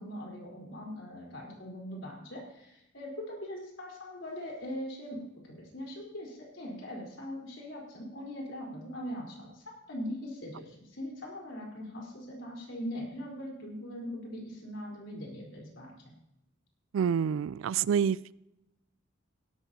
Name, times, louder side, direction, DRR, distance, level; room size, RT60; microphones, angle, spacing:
voice 1, 0.0-9.6 9.9-15.9, equal, 70° left, -2 dB, 4.3 m, -41 dB
voice 2, 16.9-18.3, right 7 dB, 75° right, 21 dB, 0.3 m, -28 dB
17.0 x 12.0 x 2.9 m, 0.88 s
head